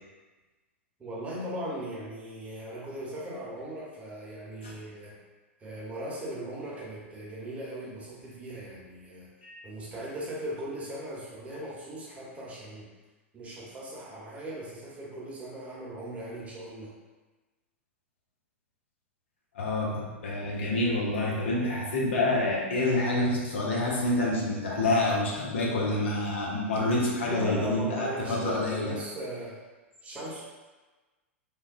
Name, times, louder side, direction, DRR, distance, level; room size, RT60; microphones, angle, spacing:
voice 1, 1.0-5.2 5.6-9.3 9.6-12.9 13.3-16.9 27.3-29.6 30.0-30.4, right 1 dB, 20° right, -6 dB, 0.9 m, -38 dB
voice 2, 19.5-28.9, left 2 dB, 65° left, -3 dB, 0.7 m, -27 dB
3.3 x 2.1 x 2.5 m, 1.2 s
figure-of-eight pair, 95°, 7 cm